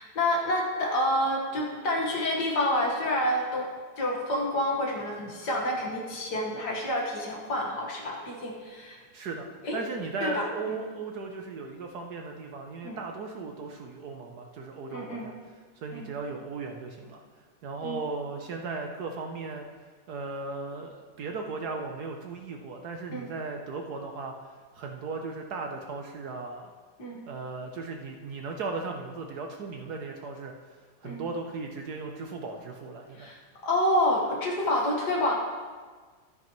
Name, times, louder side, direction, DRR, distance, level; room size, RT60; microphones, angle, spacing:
voice 1, 0.0-3.7 4.0-9.0 9.6-9.8 10.2-10.5 12.8-13.0 14.9-15.3 15.9-16.1 17.8-18.0 23.1-23.3 27.0-27.2 31.0-31.2 33.2-35.3, left 1 dB, 60° left, -1 dB, 2.1 m, -28 dB
voice 2, 9.1-19.7 20.1-26.7 27.3-33.3, right 3 dB, 65° right, 2 dB, 1.2 m, -37 dB
13.5 x 9.5 x 3.1 m, 1.5 s
omnidirectional pair, 2.1 m